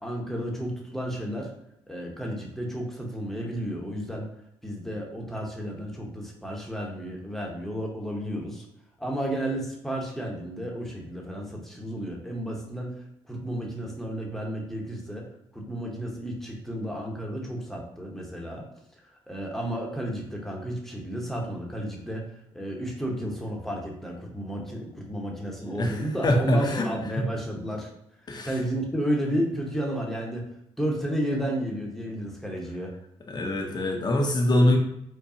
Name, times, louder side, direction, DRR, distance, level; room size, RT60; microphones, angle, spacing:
voice 1, 0.0-1.5 1.9-4.3 4.6-8.7 9.0-13.0 13.3-15.2 15.5-18.6 19.3-22.2 22.5-27.9 28.4-30.5 30.8-32.9, right 1 dB, 5° left, -1 dB, 1.0 m, -32 dB
voice 2, 25.8-26.9 28.3-28.5 33.3-34.8, left 1 dB, 40° left, 2 dB, 0.8 m, -23 dB
4.5 x 2.3 x 2.8 m, 0.77 s
supercardioid pair, 65°, 11 cm